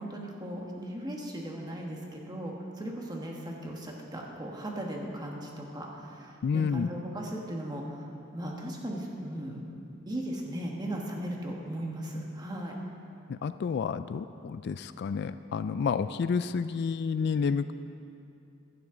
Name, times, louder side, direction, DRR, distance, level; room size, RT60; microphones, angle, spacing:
voice 1, 0.0-9.6 10.1-12.7, right 1 dB, 20° right, -1 dB, 1.5 m, -37 dB
voice 2, 6.4-6.9 13.3-17.7, left 6 dB, 55° left, 12 dB, 0.3 m, -30 dB
15.5 x 12.0 x 3.9 m, 2.6 s
head